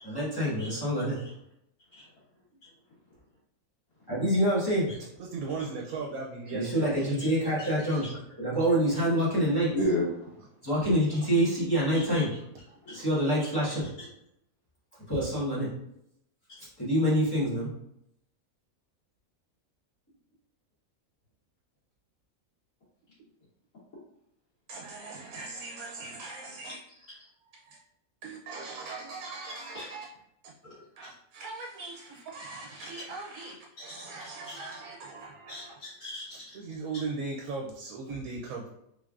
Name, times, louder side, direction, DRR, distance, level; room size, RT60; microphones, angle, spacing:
voice 1, 0.0-1.2 4.1-4.9 6.5-8.1 8.4-9.7 10.6-12.3 12.9-13.9 15.1-15.7 16.8-17.7, equal, 15° left, -9 dB, 1.3 m, -26 dB
voice 2, 5.2-7.2 24.7-26.8 27.5-27.8 28.2-30.1 30.4-30.5 31.0-35.8 36.3-38.7, right 4 dB, 80° right, 0 dB, 1.0 m, -39 dB
voice 3, 9.7-10.4 11.9-12.2 12.9-13.1 13.4-13.5 29.8-29.9 35.5-36.4, left 1 dB, 85° left, -12 dB, 1.8 m, -33 dB
3.5 x 3.3 x 2.4 m, 0.78 s
omnidirectional pair, 1.5 m